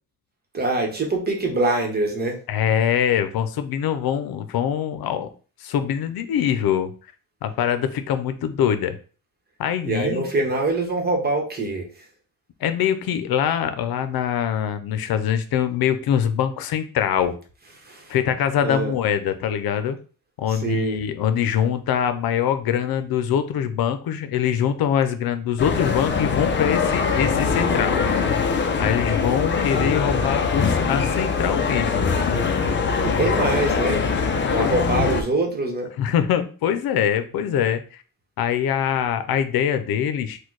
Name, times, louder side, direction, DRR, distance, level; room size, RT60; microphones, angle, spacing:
voice 1, 0.5-2.4 9.8-11.9 17.8-18.1 18.6-18.9 20.5-21.0 33.0-34.1 34.5-35.9, right 2 dB, 25° right, 2 dB, 1.0 m, -24 dB
voice 2, 2.5-5.3 5.6-6.9 7.4-9.0 9.6-10.3 12.6-17.4 18.1-20.0 20.4-28.0 28.8-32.1 34.6-35.1 36.0-37.8 38.4-40.4, left 9 dB, 85° left, 10 dB, 0.6 m, -23 dB
sound 1, 25.6-35.2, left 5 dB, 30° left, 0.5 m, -22 dB
4.4 x 2.3 x 4.6 m, 0.38 s
wide cardioid pair, 175°, 35 cm